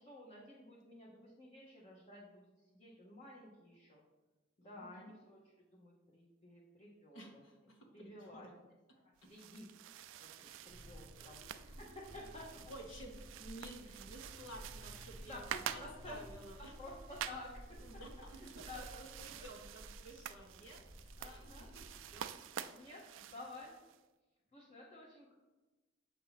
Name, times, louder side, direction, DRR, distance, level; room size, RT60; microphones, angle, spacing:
voice 1, 0.0-4.0 4.6-7.4 7.9-8.5 9.3-9.7 10.2-12.6 13.8-14.0 15.3-16.2 16.8-17.8 18.4-19.0 21.2-21.7 22.7-23.0 23.3-23.8 24.5-25.3, left 1 dB, 30° left, -4 dB, 0.9 m, -52 dB
voice 2, 4.6-5.1 7.1-8.5 9.2-9.3 11.1-12.0 12.6-16.8 17.7-20.9 21.2-22.9, right 1 dB, 75° left, 1 dB, 1.2 m, -54 dB
sound 1, 9.2-24.0, right 9 dB, 70° right, 0.3 m, -49 dB
sound 2, 10.7-22.2, equal, 90° left, 1.6 m, -55 dB
7.0 x 2.8 x 5.7 m, 1.2 s
head